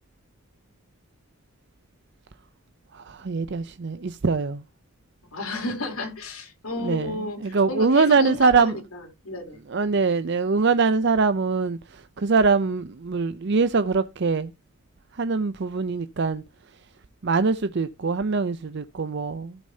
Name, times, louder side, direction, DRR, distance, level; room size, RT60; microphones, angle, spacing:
voice 1, 2.9-4.6 6.8-8.8 9.7-14.5 15.1-16.4 17.2-19.6, right 4 dB, 55° right, 0.6 m, -23 dB
voice 2, 5.3-9.6, left 2 dB, 85° left, 3.6 m, -32 dB
15.5 x 6.4 x 2.8 m
head